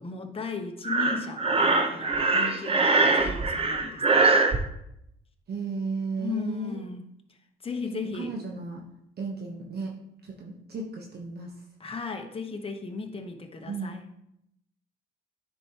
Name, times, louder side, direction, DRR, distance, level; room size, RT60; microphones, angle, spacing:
voice 1, 0.0-4.3 6.2-7.0 7.6-8.3 11.8-14.0, left 4 dB, 30° left, 4 dB, 1.0 m, -36 dB
Breathing, 0.8-4.6, right 3 dB, 30° right, 0.8 m, -22 dB
voice 2, 5.5-6.8 8.1-8.8 9.2-10.0 10.2-11.5 13.7-14.0, right 4 dB, 55° right, 0 dB, 1.0 m, -34 dB
9.8 x 4.6 x 2.9 m, 0.79 s
cardioid pair, 90°, 20 cm